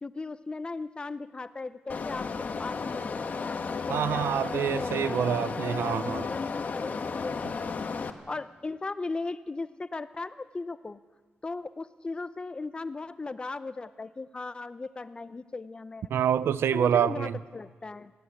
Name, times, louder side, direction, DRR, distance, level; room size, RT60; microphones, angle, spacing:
voice 1, 0.0-4.2 4.5-5.4 6.0-7.8 8.3-11.0 11.4-16.1 16.7-18.1, left 3 dB, 25° left, 0.7 m, -37 dB
sound 1, 1.9-8.1, left 5 dB, 45° left, 1.3 m, -33 dB
voice 2, 3.9-6.3 16.1-17.4, right 9 dB, 80° right, 0.6 m, -26 dB
18.5 x 16.0 x 9.9 m
wide cardioid pair, 140°, 4 cm